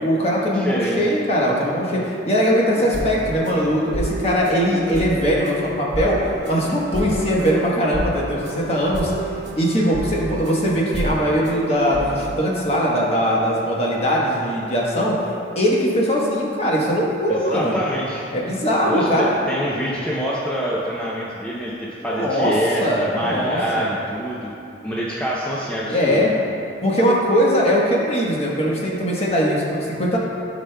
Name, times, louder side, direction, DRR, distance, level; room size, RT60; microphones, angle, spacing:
voice 1, 0.0-9.1 9.6-15.2 15.5-17.8 18.3-19.5 22.0-22.5 22.8-24.0 25.9-26.3 26.8-30.2, equal, 35° left, -4 dB, 1.1 m, -20 dB
voice 2, 0.5-1.0 17.3-18.2 18.8-24.5 24.8-26.3, equal, 5° left, -6 dB, 0.6 m, -26 dB
sound 1, 2.7-12.4, right 1 dB, 70° right, 1.1 m, -30 dB
14.0 x 5.0 x 2.2 m, 2.6 s
head